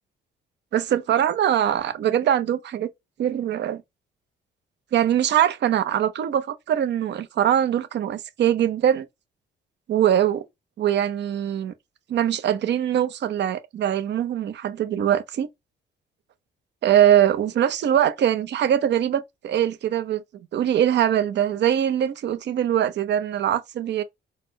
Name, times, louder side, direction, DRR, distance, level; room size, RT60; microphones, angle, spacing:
voice 1, 0.7-2.9 3.2-3.8 4.9-9.1 9.9-10.4 10.8-11.7 12.1-15.5 16.8-20.2 20.5-24.0, right 10 dB, 60° right, 0.6 m, -22 dB
4.0 x 2.1 x 2.7 m
cardioid pair, 90°, 20 cm